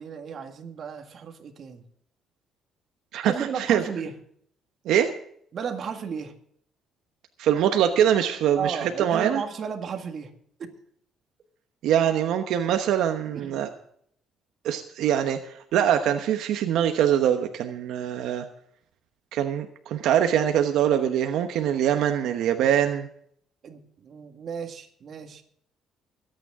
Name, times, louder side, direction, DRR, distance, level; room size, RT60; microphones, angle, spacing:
voice 1, 0.0-1.8 3.2-4.2 5.5-6.4 8.6-10.3 10.6-10.7 13.3-13.7 23.6-25.4, right 6 dB, 45° right, 5 dB, 1.9 m, -34 dB
voice 2, 3.1-3.8 4.9-5.1 7.4-9.4 11.8-13.7 14.6-18.4 19.3-23.1, right 10 dB, 75° right, 6 dB, 1.1 m, -23 dB
23.0 x 9.2 x 3.7 m, 0.66 s
cardioid pair, 140°, 0 cm